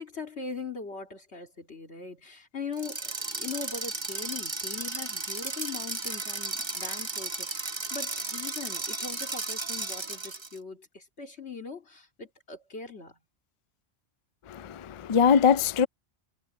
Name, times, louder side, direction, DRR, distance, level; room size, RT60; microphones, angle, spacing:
voice 1, 0.0-13.2, left 5 dB, 90° left, 3.0 m, -40 dB
sound 1, 2.7-10.6, right 3 dB, 25° right, 1.2 m, -34 dB
voice 2, 14.5-15.9, left 7 dB, 45° left, 0.4 m, -22 dB
omnidirectional pair, 1.1 m